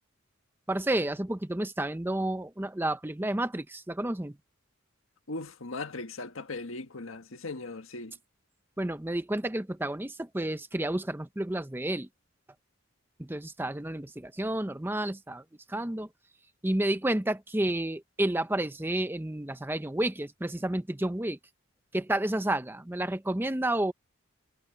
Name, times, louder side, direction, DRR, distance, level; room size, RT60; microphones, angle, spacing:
voice 1, 0.7-4.4 8.8-12.1 13.2-16.1 16.6-21.4 21.9-23.9, right 1 dB, 10° right, 0.6 m, -30 dB
voice 2, 5.3-8.2, left 3 dB, 75° left, 1.6 m, -38 dB
head